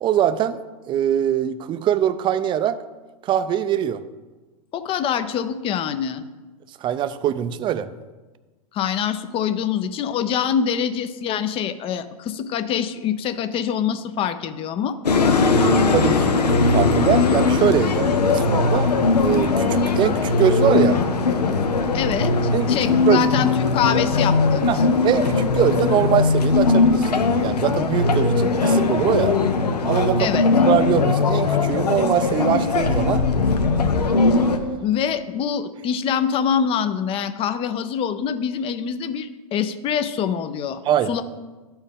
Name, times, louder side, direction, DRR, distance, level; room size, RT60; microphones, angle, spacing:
voice 1, 0.0-0.6 0.9-2.8 3.2-4.0 6.8-7.9 15.5-18.9 19.2-21.0 22.5-22.7 23.1-23.3 24.7-24.8 25.0-27.1 27.4-29.4 29.8-30.4 30.6-33.2 40.9-41.1, right 10 dB, 25° right, 13 dB, 0.4 m, -22 dB
voice 2, 4.7-6.2 8.7-15.0 21.9-24.7 30.2-30.5 34.8-40.8 41.1-41.2, left 8 dB, 30° left, 11 dB, 0.5 m, -25 dB
sound 1, 15.0-34.6, left 4 dB, 90° left, 0.9 m, -19 dB
12.0 x 4.5 x 3.6 m, 1.2 s
hypercardioid pair, 110°, 20 cm